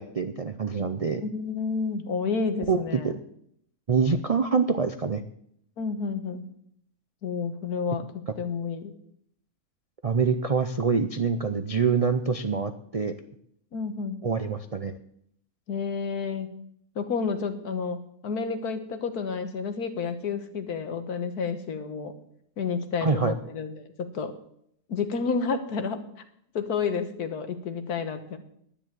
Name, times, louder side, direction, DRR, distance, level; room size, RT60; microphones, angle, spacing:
voice 1, 0.0-1.2 2.7-3.1 3.9-5.2 10.0-13.1 14.2-15.0 23.0-23.3, right 5 dB, 60° right, 9 dB, 0.3 m, -25 dB
voice 2, 1.2-3.1 5.8-6.5 7.2-8.9 13.7-14.2 15.7-16.5 17.0-22.1 22.6-24.3 24.9-26.1 26.6-28.4, left 5 dB, 90° left, 9 dB, 1.8 m, -30 dB
10.5 x 10.0 x 7.5 m, 0.70 s
omnidirectional pair, 1.6 m